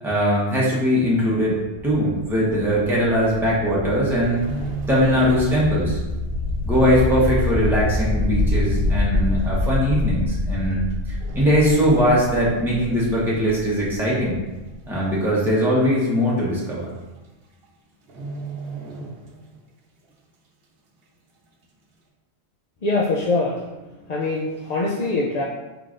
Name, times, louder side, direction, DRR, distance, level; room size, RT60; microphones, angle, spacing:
voice 1, 0.0-1.6 1.8-4.4 4.9-6.0 6.6-14.4 14.9-16.9, equal, ahead, -7 dB, 1.0 m, -20 dB
sound 1, 1.6-15.0, left 2 dB, 85° left, 1.0 m, -26 dB
sound 2, 4.1-5.8 6.1-6.4 6.9-7.0 7.9-8.0 8.3-8.4 9.2-9.4 10.5-10.9 11.2-12.8 13.1-13.3 13.8-14.3 14.7-14.8 15.0-15.1 15.5-15.6 16.6-16.7 17.0-17.3 17.5-17.7 18.0-19.7 20.0-20.1, right 3 dB, 60° right, 0.9 m, -35 dB
voice 2, 22.8-23.6 24.1-25.4, left 3 dB, 50° left, -5 dB, 0.5 m, -23 dB
4.7 x 3.8 x 2.5 m, 1.1 s
omnidirectional pair, 1.1 m